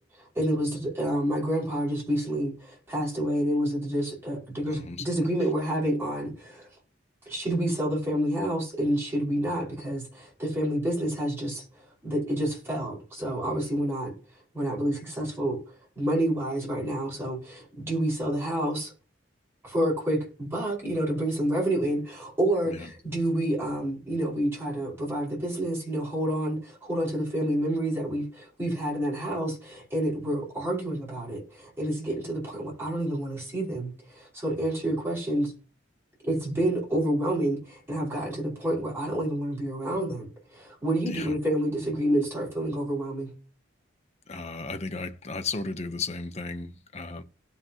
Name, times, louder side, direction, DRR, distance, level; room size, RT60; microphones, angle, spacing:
voice 1, 0.4-6.7 7.3-11.7 12.0-14.1 14.5-15.6 16.0-18.9 19.6-35.5 36.2-40.3 40.5-43.3, right 1 dB, 10° right, 5.2 m, -28 dB
voice 2, 4.7-5.0 22.7-22.9 41.1-41.3 44.3-47.2, left 3 dB, 35° left, 0.9 m, -35 dB
17.5 x 5.8 x 2.9 m
head